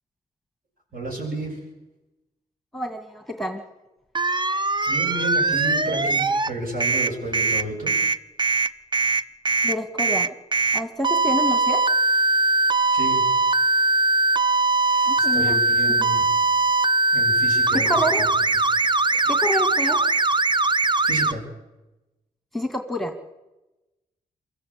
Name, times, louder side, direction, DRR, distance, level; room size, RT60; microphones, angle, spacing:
voice 1, 0.9-1.6 4.4-7.9 12.9-13.2 14.8-16.4 17.1-18.0 21.0-21.4, right 1 dB, 55° right, 0 dB, 7.5 m, -32 dB
voice 2, 2.7-3.6 9.6-10.3 10.7-11.8 15.1-15.6 16.0-16.1 17.7-18.3 19.3-20.1 22.5-23.1, equal, ahead, 7 dB, 2.1 m, -28 dB
sound 1, 4.2-6.5 6.8-21.3, right 3 dB, 25° right, 0.8 m, -21 dB
24.0 x 14.0 x 8.6 m, 1.0 s
hypercardioid pair, 40°, 18 cm